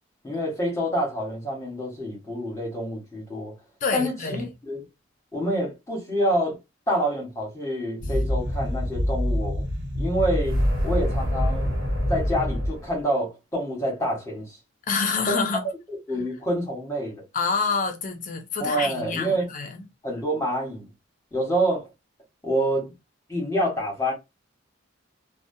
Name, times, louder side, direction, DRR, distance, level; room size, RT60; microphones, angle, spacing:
voice 1, 0.2-3.5 3.9-4.8 5.3-6.6 6.9-9.7 9.9-11.7 12.1-14.6 15.3-15.5 16.1-17.2 18.6-19.5 20.0-20.9 21.3-21.9 22.4-22.9 23.3-24.1, equal, 15° left, 1.1 m, -27 dB
voice 2, 3.8-4.5 14.9-15.6 17.3-19.8, left 4 dB, 40° left, 0.5 m, -27 dB
sound 1, 8.0-13.0, equal, 80° right, 1.0 m, -25 dB
2.6 x 2.1 x 2.5 m
head